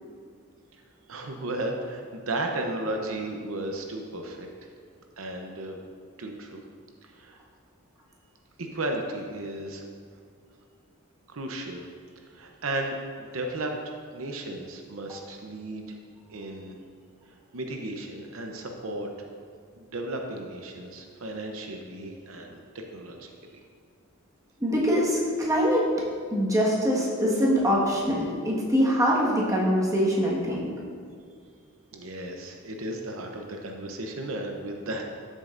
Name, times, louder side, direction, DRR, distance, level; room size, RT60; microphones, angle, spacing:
voice 1, 1.1-4.5 5.2-5.8 6.2-6.6 7.0-7.4 8.6-9.8 11.3-11.8 12.3-16.0 16.3-16.7 17.2-19.3 19.8-23.3 31.9-35.0, right 1 dB, 75° right, 2 dB, 0.8 m, -34 dB
voice 2, 24.6-25.8 26.3-30.7, equal, 15° right, -5 dB, 1.5 m, -24 dB
13.0 x 7.5 x 2.6 m, 2.1 s
head